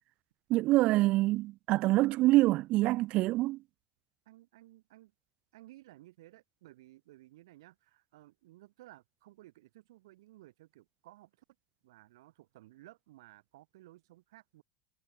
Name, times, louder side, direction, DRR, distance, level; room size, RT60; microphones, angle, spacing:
voice 1, 0.5-3.6, right 18 dB, 50° right, 0.6 m, -26 dB
voice 2, 4.2-5.1 5.5-11.4 11.8-14.6, right 17 dB, 75° right, 6.6 m, -57 dB
hypercardioid pair, 105°, 3 cm